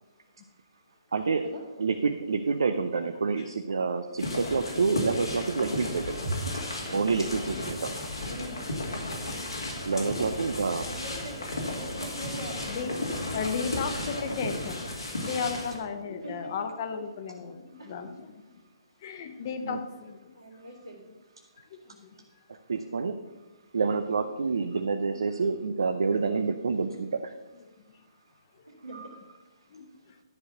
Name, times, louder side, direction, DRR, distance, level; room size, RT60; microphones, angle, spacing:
voice 1, 1.1-1.4 1.8-6.1 6.7-7.9 9.9-10.8 15.2-15.3 19.6-19.8 22.5-23.2 23.7-27.3 28.9-29.1, right 4 dB, 70° right, 7 dB, 0.6 m, -28 dB
sound 1, 4.2-15.8, left 1 dB, 85° left, 2.2 m, -34 dB
voice 2, 6.6-7.0 8.4-8.8 12.7-12.9 13.3-18.3 19.0-20.4 21.7-22.1 29.7-29.9, left 5 dB, 45° left, 7 dB, 1.1 m, -35 dB
sound 2, 6.8-7.3 7.9-8.4 9.0-9.5 11.2-11.7 12.3-12.8 13.4-13.9, right 1 dB, 35° right, 1.3 m, -50 dB
voice 3, 8.2-8.8 10.8-13.0 16.0-16.5 17.8-18.1 20.3-21.0 28.7-29.2, right 1 dB, 85° right, -6 dB, 1.9 m, -43 dB
10.5 x 4.7 x 6.6 m, 1.1 s
figure-of-eight pair, 130°, 3 cm